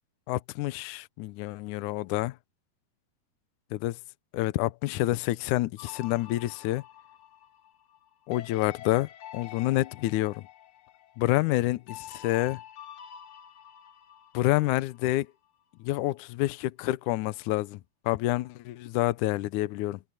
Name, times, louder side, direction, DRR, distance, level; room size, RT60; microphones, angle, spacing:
voice 1, 0.3-2.3 3.7-4.0 4.3-6.8 8.3-10.4 11.2-12.6 14.3-15.3 15.8-17.8 18.1-20.0, left 17 dB, 90° left, 1.8 m, -28 dB
sound 1, 5.8-15.2, left 10 dB, 65° left, 1.6 m, -47 dB
omnidirectional pair, 4.5 m